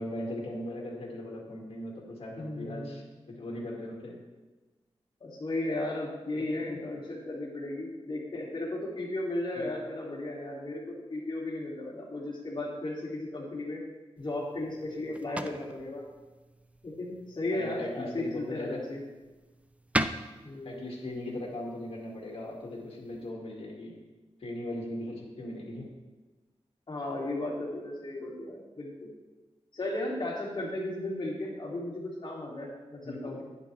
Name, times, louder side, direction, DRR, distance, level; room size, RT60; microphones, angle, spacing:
voice 1, 0.0-4.2 6.4-6.8 9.6-9.7 17.5-18.8 20.6-23.9 24.4-25.9 33.0-33.4, left 1 dB, 65° left, -3 dB, 2.3 m, -39 dB
voice 2, 2.4-3.0 5.2-13.8 14.2-16.0 16.8-19.0 20.4-20.9 26.9-29.1 29.7-33.4, left 1 dB, 45° left, -4 dB, 2.9 m, -35 dB
sound 1, 14.2-23.3, right 1 dB, 10° right, 0.4 m, -40 dB
10.5 x 9.7 x 3.4 m, 1.2 s
wide cardioid pair, 95°, 11 cm